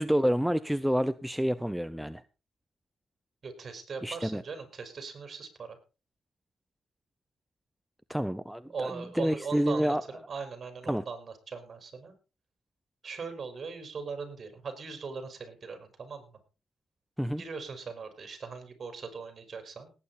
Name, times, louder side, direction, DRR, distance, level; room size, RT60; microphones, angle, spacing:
voice 1, 0.0-2.2 4.0-4.4 8.1-8.9 9.2-10.0 10.9-11.0 17.2-17.4, equal, ahead, 0.6 m, -28 dB
voice 2, 3.4-5.8 8.7-12.1 13.0-16.4 17.4-19.9, right 5 dB, 40° right, 4.8 m, -40 dB
18.5 x 9.0 x 4.2 m
cardioid pair, 90°, 0 cm